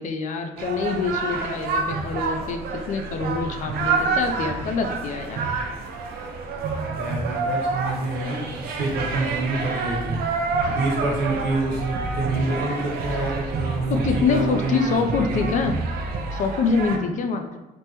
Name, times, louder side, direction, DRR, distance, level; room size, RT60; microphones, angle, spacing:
voice 1, 0.0-5.4 13.9-15.8 16.3-17.6, left 5 dB, 50° left, 6 dB, 0.4 m, -25 dB
sound 1, 0.6-17.0, right 4 dB, 65° right, 0.4 m, -28 dB
voice 2, 6.8-10.2 10.6-15.5, right 2 dB, 85° right, -3 dB, 1.1 m, -27 dB
3.4 x 2.1 x 2.9 m, 1.0 s
cardioid pair, 110°, 17 cm